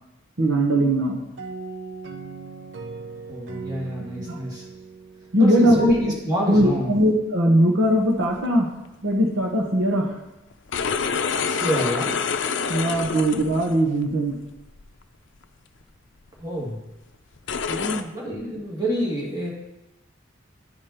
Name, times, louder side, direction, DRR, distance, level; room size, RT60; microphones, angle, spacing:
voice 1, 0.4-1.2 4.2-4.4 5.3-6.1 6.5-8.7 9.0-10.2 12.7-14.4 17.7-18.1, equal, 85° right, 1 dB, 1.1 m, -20 dB
sound 1, 1.4-6.0, right 4 dB, 65° right, 0.7 m, -38 dB
voice 2, 3.3-4.6 5.4-7.0 11.5-12.2 16.4-16.8 18.1-19.5, equal, 20° right, -4 dB, 2.2 m, -28 dB
sound 2, 8.2-8.5 10.5-13.8 14.5-14.8 15.4-15.5 16.3-16.4 17.4-18.0, left 6 dB, 70° left, 0.5 m, -27 dB
11.5 x 5.1 x 4.4 m, 0.94 s
head